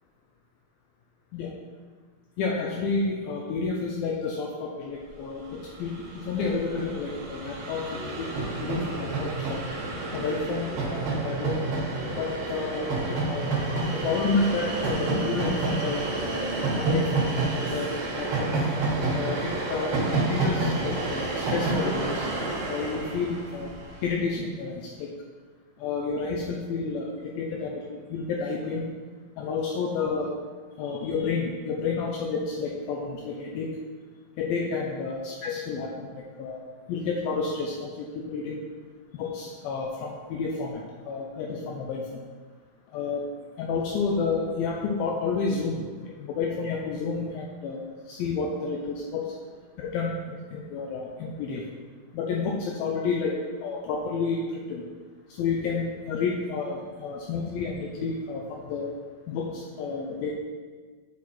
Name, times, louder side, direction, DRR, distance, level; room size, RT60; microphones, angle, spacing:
voice 1, 2.4-5.4 5.8-6.0 6.3-9.6 10.1-11.6 12.1-13.5 13.9-18.5 19.1-23.7 24.0-25.1 25.8-28.8 29.4-30.3 30.8-33.7 34.4-36.6 36.9-38.6 39.1-42.0 42.9-43.3 43.6-45.8 46.2-49.3 49.8-51.6 52.1-53.3 53.6-54.8 55.4-58.9 59.3-60.4, left 4 dB, 80° left, -2 dB, 2.5 m, -30 dB
Train, 5.4-5.5 5.7-24.1, right 3 dB, 60° right, 1.8 m, -29 dB
9.5 x 4.4 x 4.2 m, 1.5 s
omnidirectional pair, 4.3 m